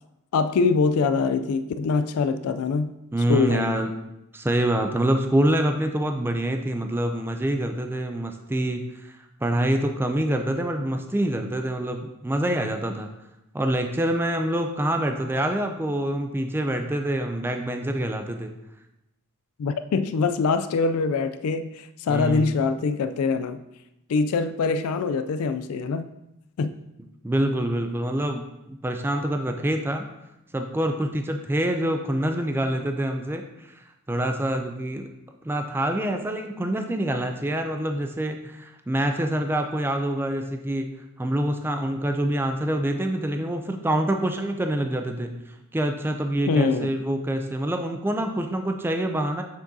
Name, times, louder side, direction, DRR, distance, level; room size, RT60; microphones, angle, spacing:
voice 1, 0.3-2.9 3.3-3.9 19.6-23.6 24.1-26.0 26.6-26.8 46.5-46.9, left 4 dB, 70° left, 10 dB, 0.3 m, -24 dB
voice 2, 3.1-3.9 4.3-13.1 13.5-18.5 22.1-22.6 27.2-30.1 30.5-35.1 35.4-40.9 41.2-49.4, right 1 dB, 10° right, 5 dB, 0.4 m, -26 dB
7.0 x 6.1 x 2.7 m, 0.89 s
head